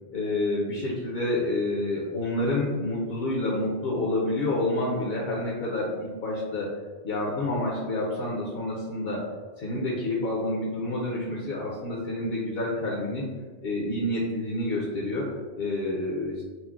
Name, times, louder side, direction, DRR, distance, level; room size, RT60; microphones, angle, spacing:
voice 1, 0.1-6.7 7.0-9.3 9.6-13.3 13.6-16.4, left 1 dB, 65° left, -4 dB, 0.8 m, -28 dB
5.6 x 2.0 x 2.4 m, 1.4 s
omnidirectional pair, 1.1 m